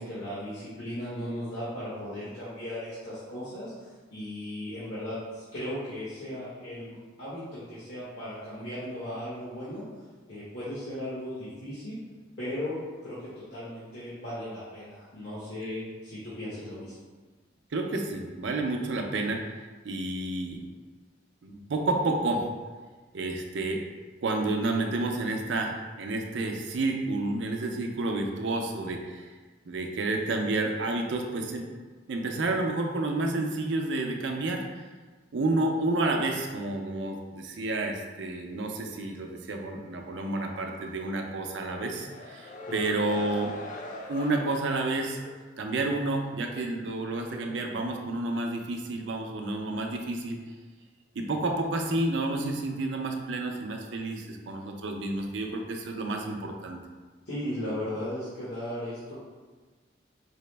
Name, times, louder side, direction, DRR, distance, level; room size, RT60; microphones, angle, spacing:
voice 1, 0.0-9.8 10.3-12.0 12.4-16.9 42.7-42.8 57.2-59.1, left 1 dB, 70° left, -12 dB, 1.2 m, -36 dB
voice 2, 17.7-19.6 19.8-20.7 21.4-22.5 23.1-23.9 24.2-29.4 29.7-31.7 32.1-34.7 35.3-43.5 44.1-45.2 45.6-50.4 51.2-56.8, right 2 dB, 85° right, 2 dB, 0.5 m, -30 dB
sound 1, 41.5-46.0, left 2 dB, 45° left, 0.3 m, -43 dB
4.8 x 2.0 x 3.2 m, 1.4 s
head